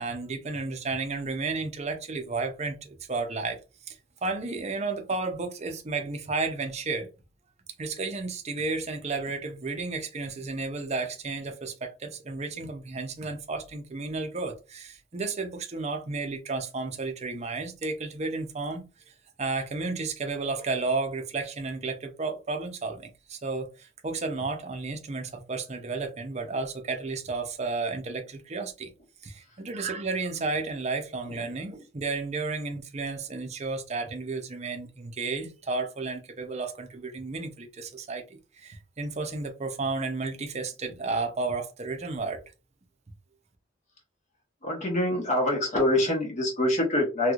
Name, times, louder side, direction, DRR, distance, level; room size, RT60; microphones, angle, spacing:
voice 1, 0.0-3.6 3.9-4.0 4.2-7.1 7.8-18.8 19.4-28.9 29.2-42.4, right 3 dB, 35° right, 0.6 m, -32 dB
voice 2, 44.6-47.3, left 1 dB, 40° left, 1.0 m, -25 dB
3.1 x 3.0 x 2.4 m
head